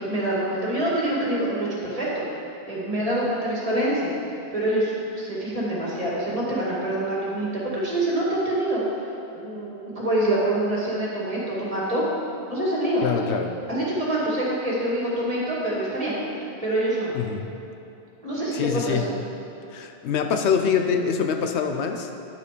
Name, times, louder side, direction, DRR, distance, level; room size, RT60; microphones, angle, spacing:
voice 1, 0.0-2.2 2.7-4.1 4.5-7.5 7.7-8.8 9.3-12.0 12.5-13.4 13.7-17.1 18.2-19.0, right 1 dB, 35° right, -7 dB, 2.3 m, -26 dB
voice 2, 13.0-13.5 17.1-17.5 18.5-19.1 19.7-22.1, left 6 dB, 85° left, 5 dB, 1.0 m, -24 dB
10.0 x 6.7 x 5.2 m, 2.8 s
omnidirectional pair, 1.1 m